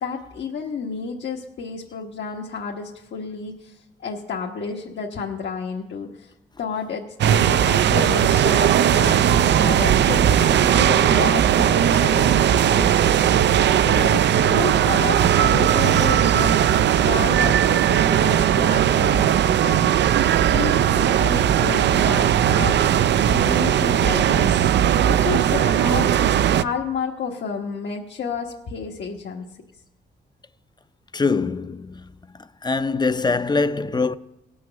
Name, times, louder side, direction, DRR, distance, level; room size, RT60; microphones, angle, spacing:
voice 1, 0.0-6.3 6.6-22.8 23.3-24.7 25.0-26.2 26.5-29.4, left 5 dB, 75° left, 1.3 m, -31 dB
sound 1, 7.2-26.6, right 10 dB, 70° right, 0.4 m, -18 dB
voice 2, 31.1-32.1 32.4-34.2, left 4 dB, 20° left, 0.6 m, -23 dB
18.0 x 6.3 x 7.0 m
cardioid pair, 65°, 19 cm